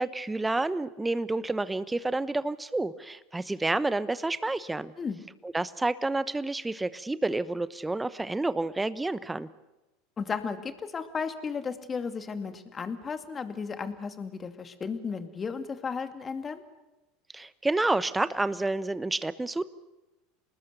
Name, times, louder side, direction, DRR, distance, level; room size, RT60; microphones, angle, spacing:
voice 1, 0.0-4.9 5.4-9.5 17.3-19.6, right 2 dB, 10° right, 15 dB, 0.9 m, -29 dB
voice 2, 10.2-16.6, left 5 dB, 25° left, 8 dB, 2.4 m, -34 dB
27.5 x 19.5 x 6.8 m, 1.0 s
hypercardioid pair, 85°, 0 cm